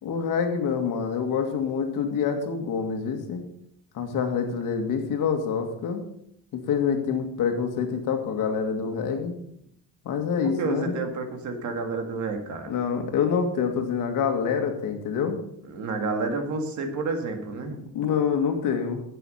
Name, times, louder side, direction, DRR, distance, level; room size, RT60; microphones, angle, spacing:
voice 1, 0.0-3.5 3.9-6.0 6.5-9.4 10.0-11.0 12.7-15.4 17.9-19.0, left 6 dB, 70° left, 5 dB, 2.1 m, -26 dB
voice 2, 10.4-12.7 15.6-17.8, right 3 dB, 60° right, 5 dB, 2.0 m, -30 dB
11.0 x 8.4 x 5.6 m, 0.73 s
cardioid pair, 180°, 33 cm